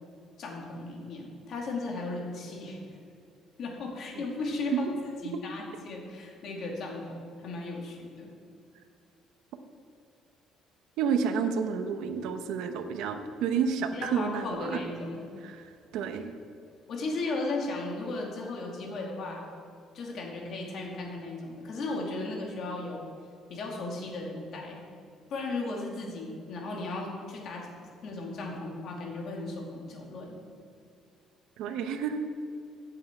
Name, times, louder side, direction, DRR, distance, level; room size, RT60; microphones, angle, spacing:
voice 1, 0.4-2.8 3.6-4.9 5.2-8.3 13.9-15.2 16.9-19.4 19.9-23.1 23.5-24.8 25.3-27.8 28.0-30.4, left 2 dB, 50° left, -1 dB, 2.4 m, -36 dB
voice 2, 11.0-14.8 15.4-15.6 15.9-16.3 31.6-32.3, right 6 dB, 80° right, 7 dB, 0.8 m, -30 dB
8.5 x 7.2 x 8.1 m, 2.5 s
cardioid pair, 155°, 0 cm